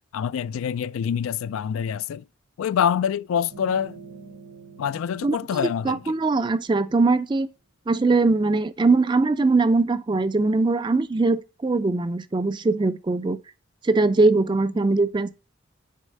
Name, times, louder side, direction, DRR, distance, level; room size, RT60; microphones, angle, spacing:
voice 1, 0.1-2.2 2.6-4.0 4.8-6.1, left 8 dB, 85° left, 0.3 m, -26 dB
sound 1, 3.5-7.1, right 4 dB, 85° right, 1.7 m, -47 dB
voice 2, 5.8-7.5 7.9-13.4 13.8-15.3, right 3 dB, 20° right, 0.3 m, -21 dB
6.5 x 4.7 x 6.4 m
head